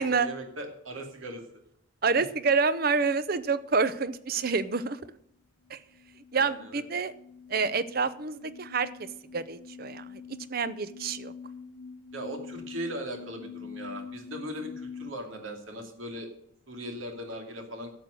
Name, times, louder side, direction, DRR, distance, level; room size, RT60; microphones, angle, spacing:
voice 1, 0.0-1.4 2.1-2.3 6.3-6.8 12.1-16.3 16.7-17.9, right 1 dB, 85° right, 4 dB, 2.5 m, -39 dB
voice 2, 2.0-5.0 5.7-5.8 6.3-7.1 7.5-8.9 9.3-10.1 10.5-11.3, right 4 dB, 50° right, 15 dB, 0.7 m, -27 dB
sound 1, 5.7-15.1, left 6 dB, 60° left, 0.7 m, -45 dB
11.5 x 7.6 x 6.4 m, 0.71 s
head